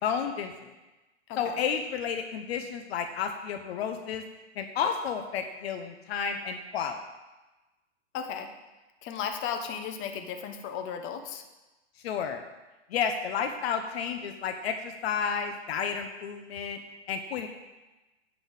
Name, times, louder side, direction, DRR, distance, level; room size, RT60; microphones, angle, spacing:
voice 1, 0.0-0.5 1.4-4.2 4.6-7.0 12.0-12.4 12.9-16.8 17.1-17.5, left 7 dB, 60° left, 6 dB, 1.1 m, -31 dB
voice 2, 8.1-8.5 9.0-11.4, left 7 dB, 35° left, 6 dB, 1.3 m, -35 dB
10.5 x 5.6 x 7.6 m, 1.1 s
hypercardioid pair, 110°, 34 cm